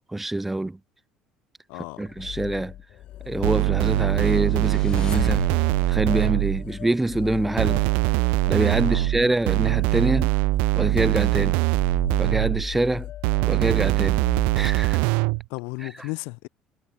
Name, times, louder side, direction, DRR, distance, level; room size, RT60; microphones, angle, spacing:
voice 1, 0.1-0.8 2.0-2.7 3.3-5.4 5.9-7.8 8.5-10.3 10.8-11.6 12.2-13.1 13.5-14.2 14.6-15.0, right 2 dB, 5° right, 0.8 m, -25 dB
voice 2, 1.7-2.1 8.7-9.1 15.5-16.5, left 32 dB, 85° left, 3.7 m, -35 dB
sound 1, 1.9-15.4, left 13 dB, 50° left, 1.3 m, -38 dB
sound 2, 3.4-6.7 7.6-12.7 13.2-15.4, right 30 dB, 80° right, 0.6 m, -22 dB
sound 3, 4.3-6.0, left 7 dB, 30° left, 2.2 m, -35 dB
cardioid pair, 145°, 2 cm